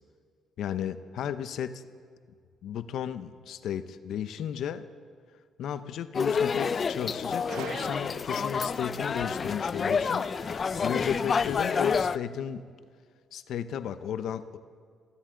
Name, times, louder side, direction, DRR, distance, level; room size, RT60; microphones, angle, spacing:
voice 1, 0.6-1.8 2.6-4.9 5.6-10.3 10.8-12.6 13.3-14.6, left 9 dB, 75° left, 12 dB, 0.7 m, -34 dB
sound 1, 6.1-12.2, left 5 dB, 45° left, 0.4 m, -29 dB
Gunshot gunfire, 7.5-8.7, right 11 dB, 90° right, 0.5 m, -42 dB
Wind instrument woodwind instrument, 7.8-12.4, right 1 dB, 65° right, 2.2 m, -49 dB
23.0 x 15.5 x 3.8 m, 2.1 s
cardioid pair, 75°, 0 cm